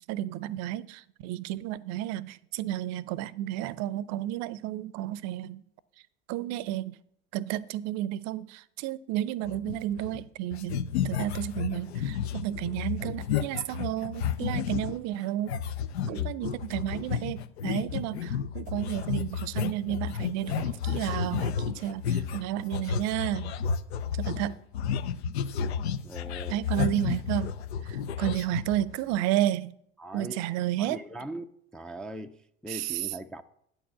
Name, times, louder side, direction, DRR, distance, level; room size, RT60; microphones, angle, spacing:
voice 1, 0.1-5.6 6.3-7.0 7.3-15.6 16.1-23.5 24.2-24.6 26.5-27.5 27.8-29.7 30.1-31.0 32.7-33.1, right 13 dB, 55° right, 0.5 m, -32 dB
sound 1, 9.4-10.2 10.5-15.0 15.5-29.2, left 7 dB, 90° left, 0.5 m, -32 dB
voice 2, 26.0-26.6 30.0-30.4 30.8-31.5 31.7-33.4, right 1 dB, ahead, 0.3 m, -40 dB
8.8 x 4.6 x 7.5 m
hypercardioid pair, 75°, 32 cm